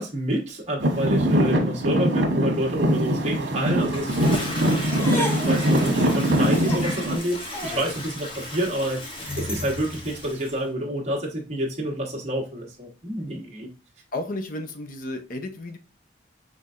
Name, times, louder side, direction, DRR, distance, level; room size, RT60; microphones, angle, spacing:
voice 1, 0.0-13.7, right 1 dB, 35° right, 1.3 m, -28 dB
Traffic noise roadway noise / Engine, 0.8-7.2, equal, 75° right, 1.2 m, -22 dB
Toilet flush, 3.8-10.6, left 1 dB, 30° left, 1.1 m, -35 dB
sound 1, 4.8-9.8, equal, 15° left, 0.6 m, -35 dB
voice 2, 14.1-15.8, left 2 dB, 50° left, 0.7 m, -33 dB
5.5 x 3.3 x 2.5 m
head